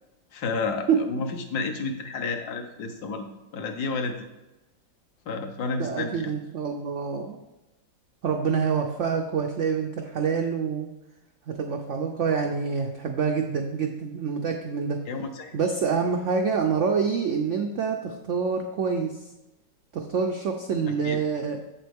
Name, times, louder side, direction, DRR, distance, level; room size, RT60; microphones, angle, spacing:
voice 1, 0.3-3.3 3.5-4.3 5.3-6.3 15.1-15.5 20.9-21.2, left 4 dB, 65° left, 5 dB, 1.3 m, -31 dB
voice 2, 5.8-7.4 8.2-10.9 11.5-15.0 15.5-19.3 19.9-21.6, right 6 dB, 85° right, 3 dB, 0.6 m, -26 dB
7.7 x 7.3 x 3.5 m, 1.0 s
omnidirectional pair, 2.0 m